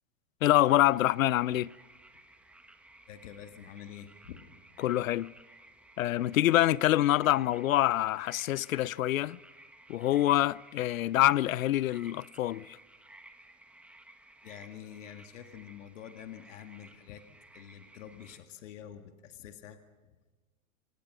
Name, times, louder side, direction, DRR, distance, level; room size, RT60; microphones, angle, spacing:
voice 1, 0.4-1.7 4.8-5.3 6.0-9.4 9.9-12.8, left 14 dB, 85° left, 0.6 m, -26 dB
sound 1, 0.5-18.4, right 2 dB, 5° right, 1.4 m, -56 dB
voice 2, 3.1-4.5 14.4-17.2 17.5-19.8, left 10 dB, 65° left, 2.0 m, -47 dB
27.0 x 19.0 x 6.3 m
hypercardioid pair, 145°, 39 cm